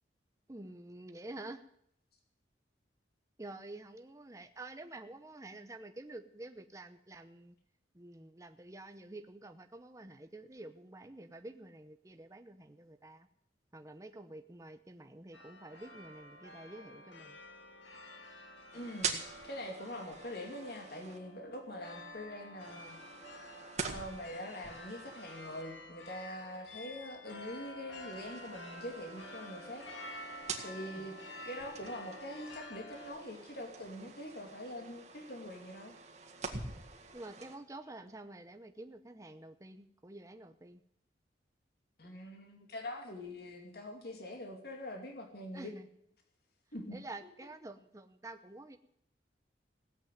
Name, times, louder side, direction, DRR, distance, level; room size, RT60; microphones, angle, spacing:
voice 1, 0.5-1.6 3.4-7.5 7.9-13.3 13.7-17.4 31.0-31.1 37.1-40.8 45.5-45.8 46.9-48.8, right 2 dB, 15° right, 8 dB, 0.8 m, -49 dB
sound 1, 15.3-33.1, left 1 dB, 90° left, 2.2 m, -50 dB
voice 2, 18.7-23.0 23.8-29.8 30.6-31.2 31.4-35.9 42.0-45.7 46.7-47.0, left 1 dB, 55° left, 3 dB, 2.5 m, -44 dB
sound 2, 18.7-21.2 22.6-25.6 28.1-32.6 32.9-37.6, right 5 dB, 40° right, 1.9 m, -45 dB
17.0 x 8.3 x 9.2 m, 0.70 s
head